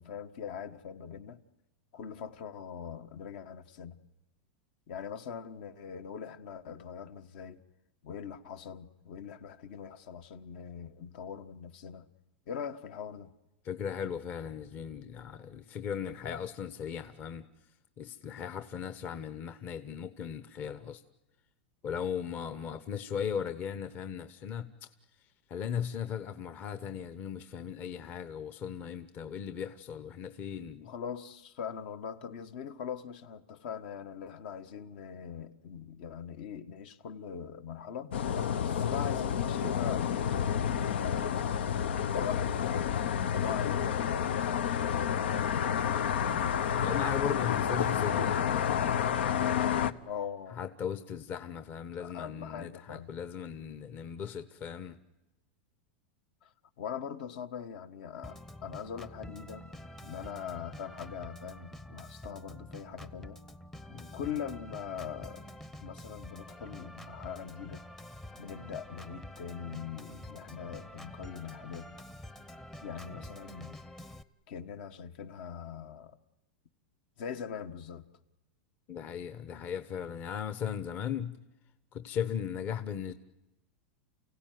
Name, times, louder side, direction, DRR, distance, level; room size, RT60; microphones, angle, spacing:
voice 1, 0.0-1.4 1.9-4.0 4.9-7.6 8.0-12.0 12.5-13.3 30.8-38.1 38.6-40.2 40.5-41.5 42.1-43.0 43.4-44.3 44.6-45.1 45.8-46.2 50.0-50.6 52.0-53.1 56.4-56.5 56.8-59.7 60.0-63.4 64.1-65.5 65.8-67.8 68.4-71.9 72.8-73.8 74.5-76.2 77.2-78.1, left 7 dB, 60° left, 1.4 m, -42 dB
voice 2, 13.6-17.4 18.0-21.0 21.8-24.9 25.5-30.9 46.1-46.4 46.8-50.0 50.5-55.0 63.9-64.2 73.1-73.3 78.9-81.4 81.9-83.1, left 8 dB, 35° left, 1.0 m, -38 dB
sound 1, 38.1-49.9, left 8 dB, 85° left, 0.9 m, -30 dB
Organ, 58.2-74.2, left 1 dB, 5° left, 0.8 m, -47 dB
29.5 x 16.5 x 9.4 m
supercardioid pair, 145°, 6 cm